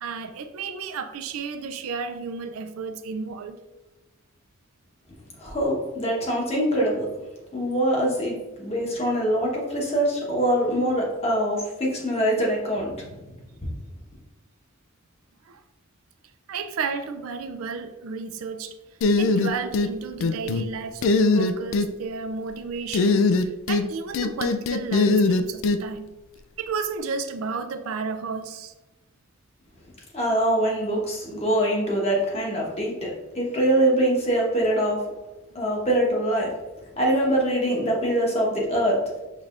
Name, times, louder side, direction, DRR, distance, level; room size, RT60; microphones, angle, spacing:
voice 1, 0.0-3.6 15.5-15.6 16.5-18.7 19.2-26.1 26.6-28.7 35.5-35.6, right 5 dB, 80° right, 8 dB, 0.4 m, -32 dB
voice 2, 5.4-7.1 7.5-13.1 30.1-35.0 35.5-36.5 37.0-39.0, right 1 dB, 30° left, -2 dB, 1.0 m, -23 dB
sound 1, 19.0-19.9 20.2-20.7 21.0-21.9 22.9-23.9 24.1-25.8, left 3 dB, 65° left, 0.3 m, -21 dB
5.5 x 3.3 x 2.4 m, 1.1 s
head